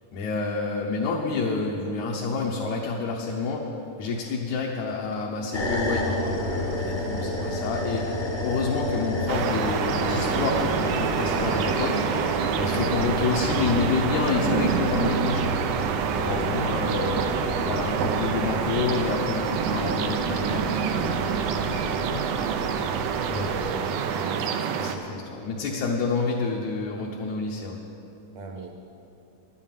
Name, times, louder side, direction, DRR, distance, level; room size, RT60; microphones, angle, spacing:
voice 1, 0.1-3.6 4.0-8.1 8.4-11.9 12.6-15.5 16.1-17.2 17.6-22.4 23.3-23.5 24.8-27.8, left 4 dB, 70° left, -3 dB, 2.1 m, -29 dB
sound 1, 5.5-23.6, left 1 dB, 35° left, 0.9 m, -31 dB
sound 2, 9.3-25.0, right 7 dB, 90° right, 1.4 m, -27 dB
voice 2, 23.1-24.9 28.3-28.7, right 3 dB, 70° right, 4 dB, 2.1 m, -38 dB
11.0 x 7.2 x 9.2 m, 2.7 s
omnidirectional pair, 3.7 m